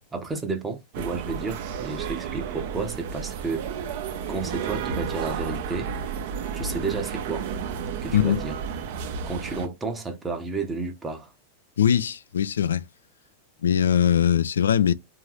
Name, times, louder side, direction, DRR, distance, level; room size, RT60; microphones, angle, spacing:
voice 1, 0.1-3.7 4.3-5.9 6.5-7.5 8.0-8.6 9.3-11.3, right 4 dB, 15° right, 0.8 m, -31 dB
sound 1, 0.9-9.7, right 7 dB, 50° right, 0.6 m, -32 dB
voice 2, 11.8-12.8 13.6-14.9, left 9 dB, 65° left, 0.3 m, -21 dB
3.6 x 2.8 x 3.0 m
figure-of-eight pair, 90°, 0 cm